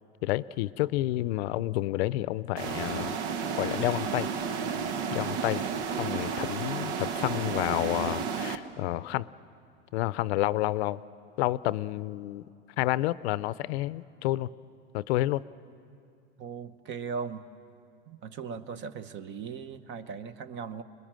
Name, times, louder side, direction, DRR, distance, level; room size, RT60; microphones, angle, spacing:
voice 1, 0.2-3.2 3.5-4.3 5.1-5.6 5.9-9.3 9.9-11.0 11.4-12.4 12.8-14.5 14.9-15.4, left 16 dB, 75° left, 18 dB, 0.6 m, -29 dB
sound 1, 2.6-8.6, right 6 dB, 85° right, 1.2 m, -32 dB
voice 2, 16.4-17.5 18.1-20.8, right 6 dB, 35° right, 13 dB, 0.9 m, -38 dB
25.5 x 21.0 x 7.6 m, 2.4 s
supercardioid pair, 135°, 33 cm